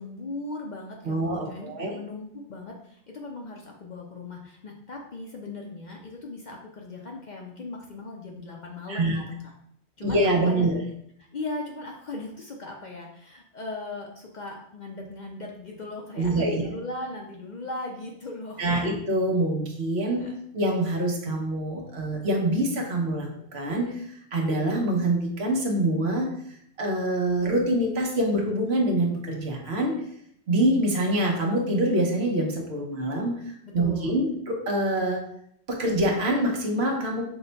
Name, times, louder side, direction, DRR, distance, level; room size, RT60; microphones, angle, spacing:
voice 1, 0.0-9.2 10.0-10.2 10.4-10.8 11.3-18.9 20.2-20.4 33.6-34.2, left 2 dB, 50° left, 0 dB, 0.6 m, -38 dB
voice 2, 1.0-1.9 8.9-9.2 10.0-10.8 16.2-16.7 18.6-20.3 20.5-26.3 26.8-30.0 30.5-33.4 33.7-35.2 35.7-37.2, right 1 dB, 65° right, 0 dB, 1.1 m, -25 dB
5.8 x 2.2 x 3.9 m, 0.70 s
omnidirectional pair, 1.2 m